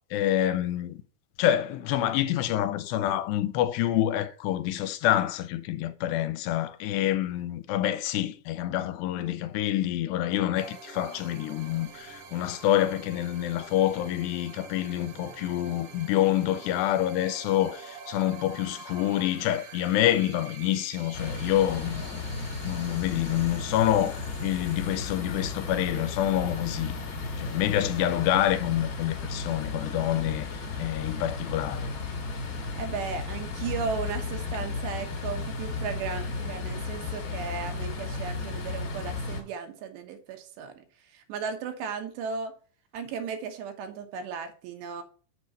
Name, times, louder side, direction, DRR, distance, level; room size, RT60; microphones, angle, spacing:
voice 1, 0.1-1.0 1.4-22.2 22.6-27.0 27.4-31.9, left 12 dB, 85° left, 2.7 m, -27 dB
sound 1, 10.6-29.0, right 6 dB, 60° right, 2.1 m, -48 dB
sound 2, 21.1-39.4, left 4 dB, 45° left, 2.3 m, -34 dB
voice 2, 32.8-42.5 42.9-45.0, right 6 dB, 80° right, 3.3 m, -35 dB
6.9 x 6.7 x 4.0 m
omnidirectional pair, 4.9 m